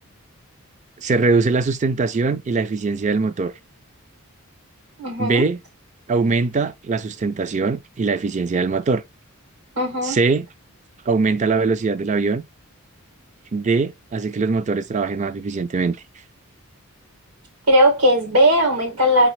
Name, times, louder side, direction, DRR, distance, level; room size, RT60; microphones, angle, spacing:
voice 1, 1.0-3.5 5.2-5.6 6.1-9.0 10.0-10.5 11.1-12.4 13.5-16.0, right 4 dB, 35° right, 0.4 m, -21 dB
voice 2, 5.0-5.4 9.7-10.2 17.7-19.3, equal, 85° right, 3.4 m, -17 dB
5.1 x 3.2 x 3.1 m
head